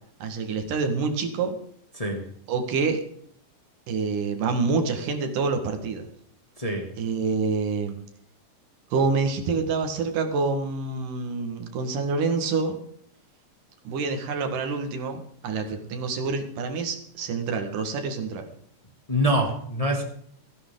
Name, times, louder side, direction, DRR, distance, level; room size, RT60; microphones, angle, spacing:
voice 1, 0.2-1.6 2.5-3.0 3.9-6.1 7.0-8.0 8.9-12.8 13.8-18.5, right 4 dB, 85° right, 5 dB, 3.4 m, -27 dB
voice 2, 6.6-6.9 19.1-20.0, equal, 10° left, 1 dB, 2.1 m, -25 dB
17.0 x 16.0 x 3.9 m, 0.64 s
omnidirectional pair, 3.7 m